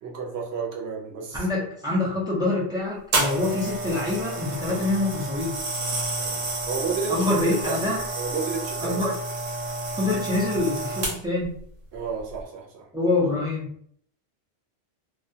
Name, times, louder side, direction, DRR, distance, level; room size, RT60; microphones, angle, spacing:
voice 1, 0.0-1.7 6.2-7.7 8.2-9.0 11.9-12.9, right 5 dB, 65° right, -1 dB, 0.9 m, -32 dB
voice 2, 1.3-5.5 7.1-8.0 8.8-9.2 10.0-11.5 12.9-13.7, left 2 dB, 5° right, -4 dB, 0.3 m, -25 dB
sound 1, 3.1-11.4 12.2-12.4, right 2 dB, 85° right, 1.1 m, -30 dB
2.3 x 2.1 x 2.7 m, 0.63 s
omnidirectional pair, 1.2 m